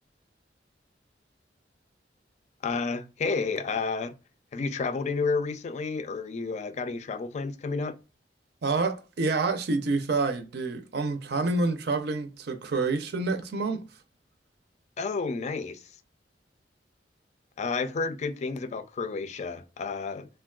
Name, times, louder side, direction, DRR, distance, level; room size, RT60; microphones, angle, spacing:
voice 1, 2.6-4.1 4.5-7.9 15.0-15.8 17.6-20.3, left 4 dB, 40° left, 0.3 m, -31 dB
voice 2, 8.6-13.8, right 3 dB, 65° right, 0.5 m, -28 dB
3.4 x 2.2 x 2.3 m
head